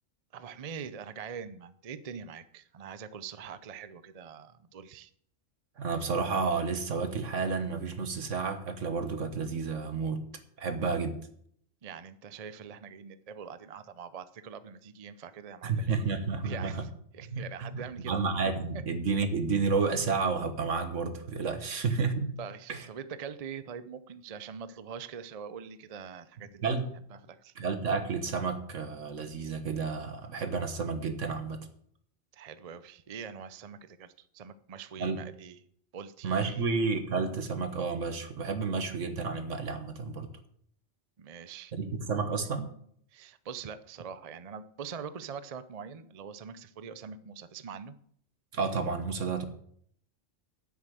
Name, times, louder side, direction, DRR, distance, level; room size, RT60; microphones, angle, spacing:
voice 1, 0.3-5.1 11.8-16.1 16.4-18.2 18.7-18.8 21.7-21.9 22.4-26.7 27.1-27.5 32.3-35.6 35.9-36.7 41.2-41.7 43.1-48.0, right 7 dB, 40° right, 14 dB, 0.6 m, -43 dB
voice 2, 5.8-10.2 10.6-11.2 15.6-16.8 17.3-22.4 22.7-22.9 26.6-26.9 27.5-31.6 35.0-35.2 36.2-40.3 41.7-42.7 48.5-49.4, right 4 dB, 75° right, 9 dB, 1.7 m, -31 dB
10.0 x 8.4 x 7.5 m, 0.64 s
omnidirectional pair, 1.3 m